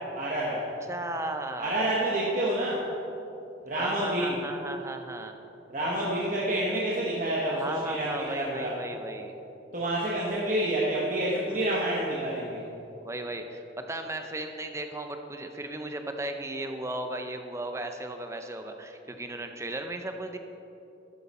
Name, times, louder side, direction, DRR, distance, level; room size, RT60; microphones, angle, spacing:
voice 1, 0.2-0.7 1.6-2.9 3.6-4.4 5.7-8.7 9.7-12.6, right 1 dB, 45° right, -5 dB, 1.2 m, -28 dB
voice 2, 0.9-1.9 3.8-5.4 7.5-9.3 13.0-20.4, right 1 dB, 15° right, 6 dB, 0.6 m, -36 dB
12.5 x 8.0 x 4.3 m, 2.9 s
head